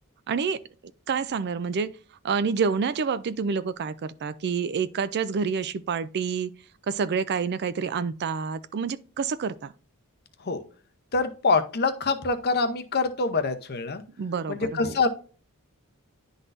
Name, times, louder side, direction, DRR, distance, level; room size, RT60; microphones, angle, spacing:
voice 1, 0.3-0.6 1.1-1.9 2.2-6.5 6.9-9.7 14.2-15.0, right 5 dB, 50° right, 0.4 m, -28 dB
voice 2, 11.1-14.0 14.5-15.1, left 4 dB, 45° left, 0.7 m, -25 dB
10.5 x 4.0 x 2.5 m
head